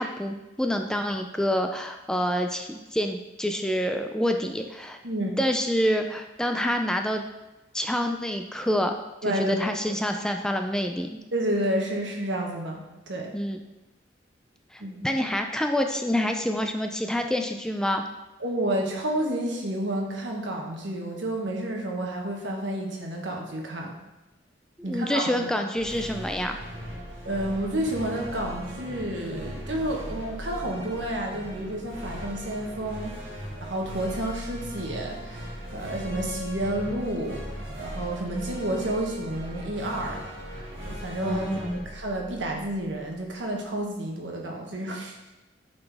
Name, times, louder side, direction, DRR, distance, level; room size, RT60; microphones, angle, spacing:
voice 1, 0.0-5.0 5.4-7.2 7.7-9.0 9.3-11.2 13.3-13.6 14.7-18.0 24.9-26.6 41.2-41.8, equal, 5° left, 4 dB, 0.3 m, -27 dB
voice 2, 9.2-10.0 11.3-13.3 14.8-15.1 18.4-23.9 24.8-25.5 27.2-33.1 33.6-40.2 40.5-41.5 41.7-45.2, right 1 dB, 80° right, 0 dB, 1.3 m, -30 dB
sound 1, 25.7-43.2, equal, 35° right, 2.2 m, -38 dB
8.6 x 4.1 x 3.5 m, 1.0 s
head